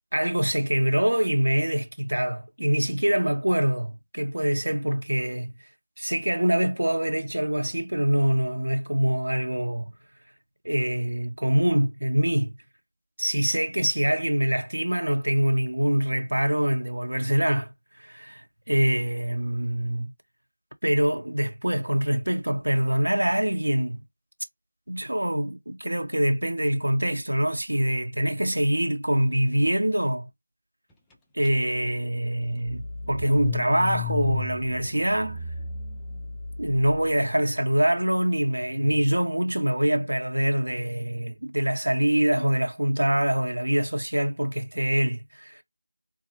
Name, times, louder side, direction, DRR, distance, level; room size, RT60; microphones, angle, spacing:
voice 1, 0.1-5.5 6.0-9.9 10.6-12.5 13.2-17.7 18.0-20.1 20.8-24.0 24.9-30.3 31.3-35.4 36.6-45.6, equal, 75° right, 1.0 m, -24 dB
Car / Engine starting, 31.4-31.5 31.8-37.1, left 5 dB, 5° left, 0.4 m, -35 dB
4.0 x 2.4 x 2.9 m
figure-of-eight pair, 170°, 0 cm